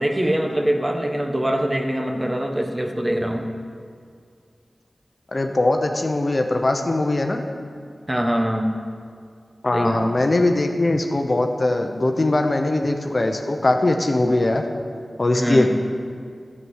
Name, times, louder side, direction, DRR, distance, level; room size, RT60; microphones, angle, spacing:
voice 1, 0.0-3.5 8.1-8.8 9.7-10.1 15.4-15.7, right 1 dB, 20° right, 3 dB, 1.1 m, -23 dB
voice 2, 5.3-7.4 9.6-14.6 15.2-15.7, left 2 dB, 40° left, 4 dB, 0.9 m, -21 dB
12.5 x 8.7 x 6.4 m, 2.3 s
wide cardioid pair, 90°, 0 cm